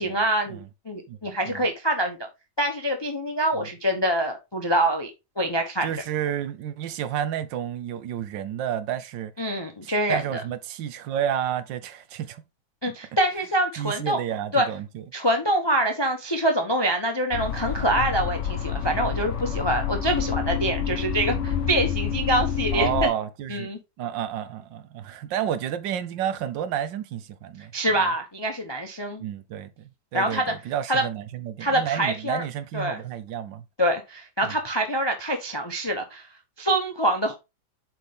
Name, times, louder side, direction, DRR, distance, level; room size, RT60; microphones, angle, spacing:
voice 1, 0.0-0.6 0.9-2.3 2.6-5.1 5.4-6.0 9.4-10.4 12.8-14.2 14.5-14.6 15.1-23.1 23.5-23.8 27.7-29.2 30.1-30.5 30.9-31.0 31.6-32.4 32.7-33.0 33.8-36.3 36.6-37.3, right 1 dB, 25° left, 0.5 m, -25 dB
voice 2, 1.1-1.6 3.5-3.7 5.8-9.3 9.8-12.4 13.8-15.0 22.7-23.7 24.0-28.1 29.2-33.6 34.4-34.5, right 10 dB, 75° right, 1.5 m, -31 dB
sound 1, 17.3-23.1, left 7 dB, 50° left, 1.0 m, -28 dB
7.9 x 4.5 x 3.5 m
omnidirectional pair, 2.1 m